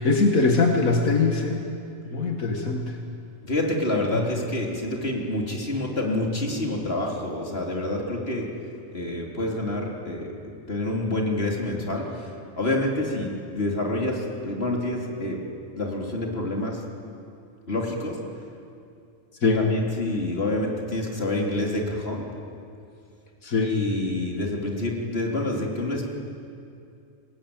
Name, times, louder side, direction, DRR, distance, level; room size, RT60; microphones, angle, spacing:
voice 1, 0.0-1.6 2.1-2.9 4.1-4.2 19.4-19.6 23.4-23.7, left 3 dB, 85° left, 2 dB, 2.4 m, -22 dB
voice 2, 3.4-8.5 8.9-12.3 12.6-15.4 15.8-16.8 17.7-18.2 19.5-22.2 23.6-26.1, left 1 dB, 45° left, -1 dB, 4.0 m, -27 dB
29.5 x 21.0 x 8.9 m, 2.5 s
omnidirectional pair, 1.4 m